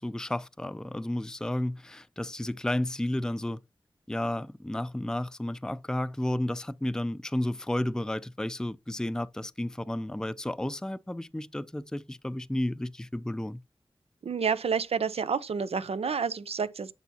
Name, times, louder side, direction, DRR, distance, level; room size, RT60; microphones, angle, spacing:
voice 1, 0.0-3.6 4.1-13.6, left 1 dB, 5° left, 0.4 m, -32 dB
voice 2, 14.2-16.9, right 6 dB, 85° right, 0.6 m, -29 dB
7.1 x 6.8 x 2.8 m
cardioid pair, 40°, 10 cm